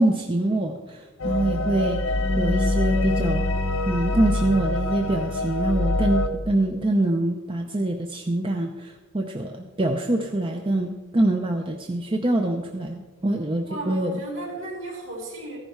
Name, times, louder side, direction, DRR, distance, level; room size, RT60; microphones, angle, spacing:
voice 1, 0.0-3.4 3.9-14.1, right 1 dB, 25° right, 4 dB, 0.6 m, -25 dB
sound 1, 1.2-6.3, left 2 dB, 70° left, 1.3 m, -24 dB
voice 2, 13.7-15.6, right 1 dB, 65° right, -1 dB, 3.9 m, -34 dB
14.5 x 11.0 x 4.6 m, 1.3 s
head